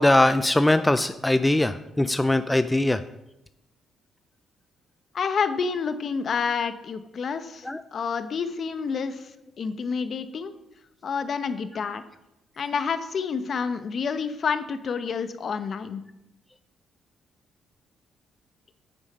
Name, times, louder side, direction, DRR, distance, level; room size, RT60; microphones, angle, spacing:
voice 1, 0.0-3.0 7.6-7.8, left 1 dB, 10° left, 11 dB, 0.4 m, -21 dB
voice 2, 5.1-7.6 7.9-9.3 9.6-10.5 11.0-12.0 12.6-16.0, left 5 dB, 50° left, 10 dB, 0.9 m, -28 dB
9.1 x 7.1 x 5.5 m, 0.90 s
cardioid pair, 90°, 0 cm